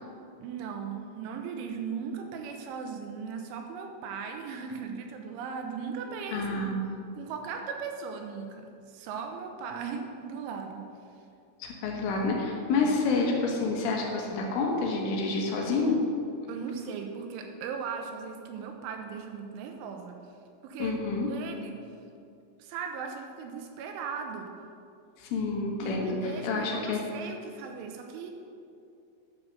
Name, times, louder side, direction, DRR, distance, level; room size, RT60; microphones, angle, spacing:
voice 1, 0.4-6.7 7.1-10.9 12.7-12.9 16.5-20.2 20.6-21.0 21.3-21.8 22.6-24.5 25.8-28.3, right 6 dB, 85° right, 4 dB, 3.1 m, -38 dB
voice 2, 6.3-6.8 11.6-16.0 20.8-21.3 25.2-27.0, left 3 dB, 75° left, 0 dB, 3.8 m, -28 dB
10.5 x 6.5 x 6.6 m, 2.6 s
omnidirectional pair, 5.8 m